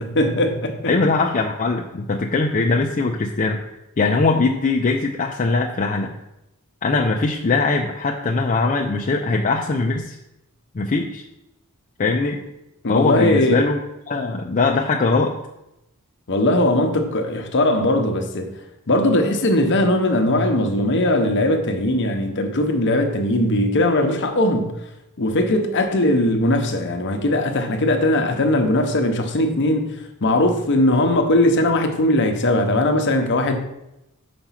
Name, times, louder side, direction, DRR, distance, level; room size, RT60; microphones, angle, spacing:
voice 1, 0.0-0.8 12.8-13.6 16.3-18.5 18.9-24.7 25.2-33.6, left 1 dB, 55° left, 0.9 m, -19 dB
voice 2, 0.9-3.6 4.0-6.1 6.8-10.2 10.7-11.2 12.0-12.4 12.9-13.8 14.1-15.3, left 3 dB, 35° left, 0.5 m, -21 dB
5.9 x 5.1 x 5.7 m
head